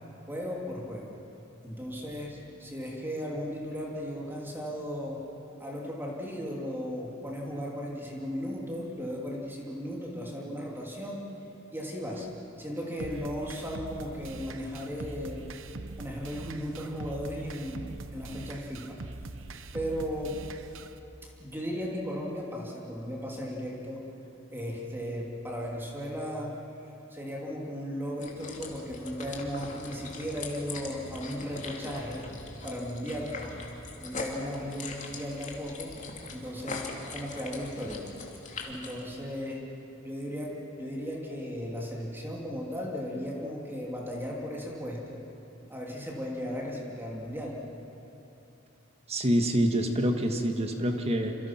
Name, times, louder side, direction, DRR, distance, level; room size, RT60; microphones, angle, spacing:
voice 1, 0.3-1.2 1.6-5.2 5.6-11.3 11.7-12.3 12.6-15.5 16.0-19.0 19.7-20.4 21.2-24.0 24.5-26.6 27.1-32.2 32.6-33.4 34.0-36.0 36.3-38.1 38.7-39.7 40.0-45.2 45.7-47.6, equal, 10° right, -3 dB, 3.0 m, -36 dB
sound 1, 13.0-21.0, right 2 dB, 75° right, 1.0 m, -42 dB
sound 2, 28.2-39.0, left 3 dB, 40° left, 2.8 m, -41 dB
voice 2, 49.1-51.4, equal, 30° right, 4 dB, 1.8 m, -26 dB
28.0 x 26.5 x 6.0 m, 2.9 s
head